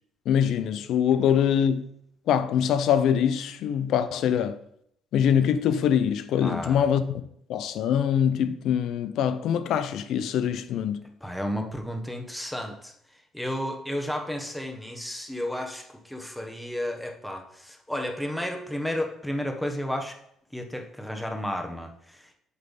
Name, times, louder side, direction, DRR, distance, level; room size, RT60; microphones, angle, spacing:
voice 1, 0.3-1.9 2.3-4.6 5.1-7.0 7.5-11.0, left 8 dB, 75° left, 0.5 m, -24 dB
voice 2, 6.4-6.9 11.2-12.9 13.3-20.1 20.5-22.3, equal, 5° left, 1.1 m, -32 dB
8.1 x 3.3 x 5.3 m
cardioid pair, 90°, 0 cm